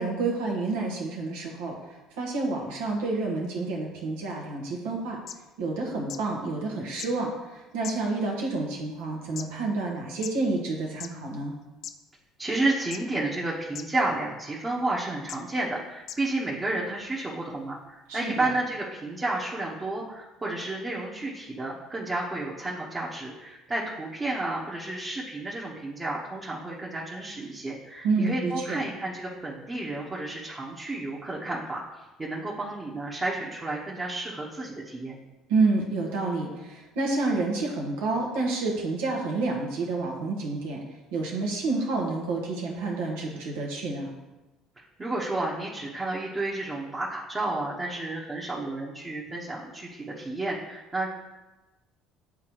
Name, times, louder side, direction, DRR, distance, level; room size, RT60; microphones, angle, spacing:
voice 1, 0.0-1.7 2.2-5.2 5.6-11.5 18.1-18.5 28.0-28.8 35.5-40.8 41.1-44.1, right 3 dB, 80° right, -1 dB, 1.3 m, -29 dB
sound 1, 5.0-5.1 5.3-5.4 6.1-6.2 7.0-7.1 7.8-8.3 9.0-9.5 10.2-10.3 10.9-11.1 11.8-11.9 12.9-13.2 13.7-13.9 14.6-14.7 15.3-15.4 16.1-16.2 17.0-17.1, left 9 dB, 55° left, 0.4 m, -38 dB
voice 2, 12.4-35.2 44.8-51.1, right 2 dB, 25° right, -5 dB, 1.2 m, -31 dB
8.2 x 3.8 x 3.1 m, 1.1 s
hypercardioid pair, 70°, 0 cm